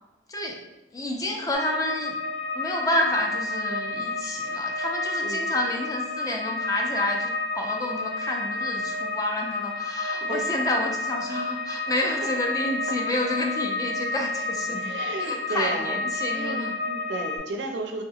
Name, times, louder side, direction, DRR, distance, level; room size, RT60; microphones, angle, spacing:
voice 1, 0.3-0.6 0.9-2.1 2.5-14.9 15.2-16.7, left 1 dB, 20° left, 1 dB, 0.4 m, -29 dB
sound 1, 1.5-17.4, left 2 dB, 90° left, 1.2 m, -30 dB
voice 2, 14.8-16.0 16.3-18.0, right 3 dB, 70° right, 3 dB, 0.4 m, -33 dB
3.3 x 2.9 x 2.3 m, 1.0 s
head